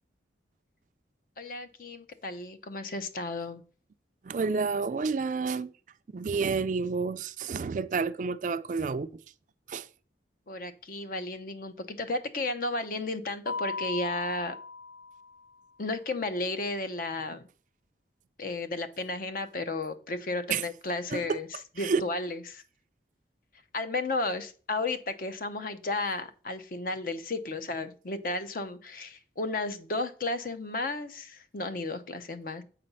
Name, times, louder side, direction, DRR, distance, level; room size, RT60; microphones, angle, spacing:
voice 1, 1.4-3.6 10.5-14.6 15.8-17.5 18.4-21.5 21.8-22.6 23.7-32.6, left 2 dB, 50° left, 0.6 m, -33 dB
voice 2, 4.2-5.7 6.1-9.2 9.7-9.9 20.5-20.6 21.1-21.4 21.8-22.0, right 4 dB, 45° right, 0.3 m, -29 dB
Mallet percussion, 13.5-15.5, left 4 dB, 85° left, 0.4 m, -37 dB
7.9 x 4.2 x 5.4 m
head